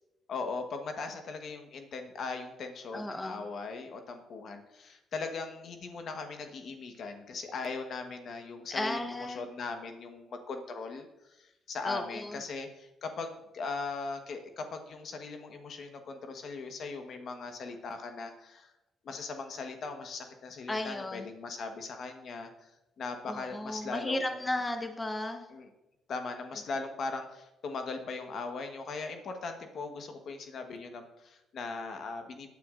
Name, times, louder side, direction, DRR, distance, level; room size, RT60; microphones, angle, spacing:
voice 1, 0.3-11.0 11.4-18.7 19.0-22.5 23.0-24.3 25.5-25.7 26.1-32.5, left 4 dB, 60° left, 5 dB, 1.2 m, -39 dB
voice 2, 2.9-3.4 8.7-9.4 11.8-12.4 20.7-21.3 23.3-25.4, left 1 dB, 20° left, 5 dB, 1.1 m, -34 dB
17.5 x 9.4 x 2.5 m, 0.95 s
cardioid pair, 90°, 0 cm